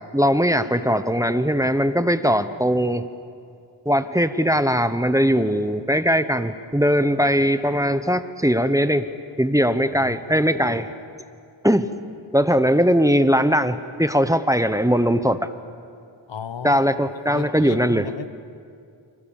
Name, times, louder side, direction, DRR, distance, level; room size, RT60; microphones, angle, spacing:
voice 1, 0.1-3.1 3.8-9.1 9.4-10.9 11.6-11.9 12.3-15.5 16.6-18.1, equal, 5° right, 11 dB, 1.0 m, -20 dB
voice 2, 16.3-16.9 17.3-18.3, left 6 dB, 75° left, 12 dB, 1.2 m, -33 dB
30.0 x 27.0 x 7.3 m, 2.4 s
wide cardioid pair, 95°, 44 cm